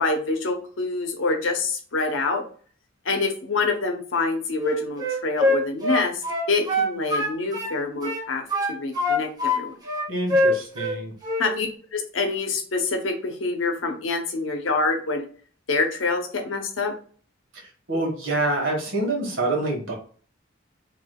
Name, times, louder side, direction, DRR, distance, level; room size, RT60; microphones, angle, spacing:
voice 1, 0.0-2.4 3.0-9.7 11.4-15.3 15.7-16.9, left 3 dB, 80° left, 4 dB, 0.7 m, -26 dB
Wind instrument woodwind instrument, 4.6-7.7 8.0-9.6 9.9-11.0 11.2-11.5, left 1 dB, 20° right, 0.8 m, -23 dB
voice 2, 10.1-11.1 17.5-19.9, right 2 dB, 85° right, 0 dB, 1.4 m, -26 dB
3.4 x 2.9 x 2.3 m, 0.43 s
head